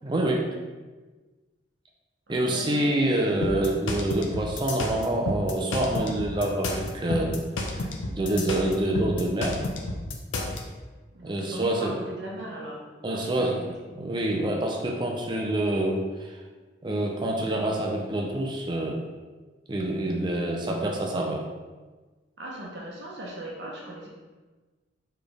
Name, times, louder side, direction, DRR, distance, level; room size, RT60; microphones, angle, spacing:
voice 1, 0.0-0.5 2.3-7.4 7.7-9.6 11.2-12.0 13.0-16.4 16.8-19.0 19.7-21.4, right 1 dB, 25° right, 0 dB, 0.4 m, -27 dB
voice 2, 2.3-2.9 11.1-13.6 22.4-24.1, right 1 dB, 65° right, -3 dB, 0.8 m, -38 dB
sound 1, 3.4-10.6, left 2 dB, 85° left, 0.6 m, -30 dB
4.1 x 3.2 x 3.3 m, 1.3 s
head